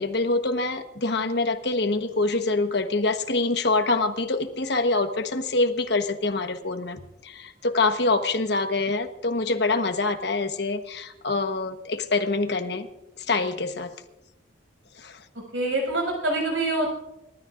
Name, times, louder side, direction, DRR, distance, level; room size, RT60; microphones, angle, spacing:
voice 1, 0.0-12.9 13.2-13.9 15.0-15.2, left 3 dB, 60° left, 7 dB, 1.2 m, -25 dB
voice 2, 15.5-16.9, right 2 dB, 90° right, 1 dB, 6.7 m, -25 dB
29.0 x 13.0 x 2.6 m, 0.93 s
head